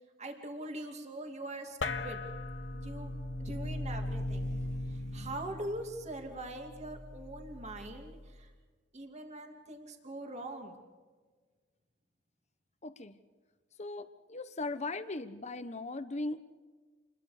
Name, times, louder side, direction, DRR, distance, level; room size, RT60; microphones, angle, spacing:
voice 1, 0.2-2.3 2.7-3.1 3.4-8.5 8.9-10.8, right 1 dB, 35° right, 3 dB, 2.6 m, -42 dB
sound 1, 1.8-8.5, left 2 dB, 75° left, 1.3 m, -39 dB
voice 2, 12.8-13.1 13.8-16.4, left 2 dB, 35° left, 11 dB, 1.2 m, -38 dB
28.0 x 22.0 x 5.1 m, 1.4 s
head